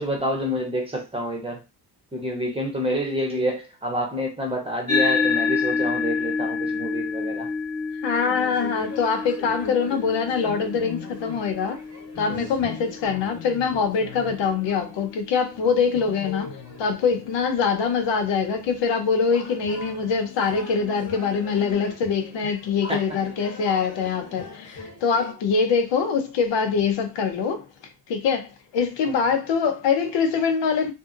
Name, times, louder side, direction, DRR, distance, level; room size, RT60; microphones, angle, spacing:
voice 1, 0.0-1.6 2.1-7.5 12.3-12.5 22.4-22.5 22.9-23.0 29.0-29.1, equal, 15° right, 0.7 m, -28 dB
sound 1, 4.9-13.6, left 5 dB, 10° left, 1.1 m, -28 dB
voice 2, 8.0-11.8 12.2-16.5 16.8-27.6 28.1-30.9, left 5 dB, 90° left, 0.7 m, -24 dB
sound 2, 8.1-25.3, left 3 dB, 35° left, 0.9 m, -40 dB
2.6 x 2.5 x 2.5 m
cardioid pair, 135°, 42 cm